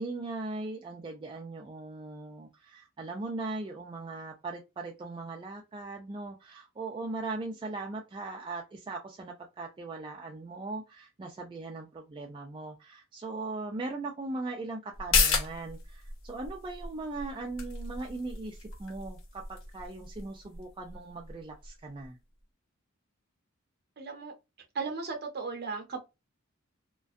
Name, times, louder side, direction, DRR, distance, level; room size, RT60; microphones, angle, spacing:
voice 1, 0.0-22.2, right 3 dB, 25° right, 0.3 m, -39 dB
sound 1, 14.9-22.1 22.4-22.5, left 4 dB, 70° left, 0.7 m, -34 dB
voice 2, 24.0-24.3 24.7-26.0, right 4 dB, 50° right, 0.7 m, -36 dB
2.4 x 2.2 x 2.4 m
head